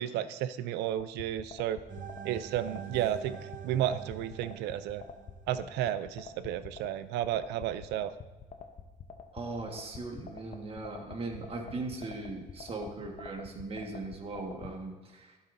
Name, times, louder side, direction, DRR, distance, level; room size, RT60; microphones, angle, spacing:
voice 1, 0.0-1.8 2.2-3.4 3.6-5.0 5.5-8.1, right 11 dB, 85° right, 13 dB, 0.5 m, -32 dB
sound 1, 0.9-14.7, left 6 dB, 45° left, 0.9 m, -46 dB
sound 2, 1.9-5.9, right 9 dB, 50° right, 0.9 m, -45 dB
voice 2, 9.3-15.4, right 3 dB, 35° right, 2 dB, 1.6 m, -39 dB
11.5 x 9.7 x 2.7 m, 1.2 s
cardioid pair, 110°, 17 cm